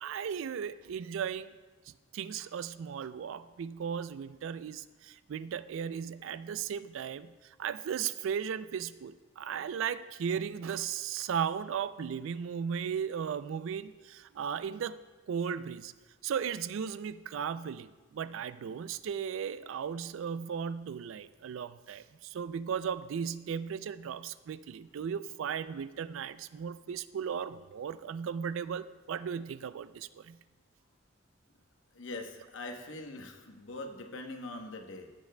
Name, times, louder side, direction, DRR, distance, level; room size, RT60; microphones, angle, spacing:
voice 1, 0.0-1.5 1.9-15.0 15.3-15.9 16.2-30.4, right 7 dB, 75° right, 15 dB, 0.3 m, -36 dB
voice 2, 31.9-35.1, left 2 dB, 65° left, 4 dB, 0.9 m, -42 dB
16.5 x 7.2 x 2.2 m, 1.3 s
head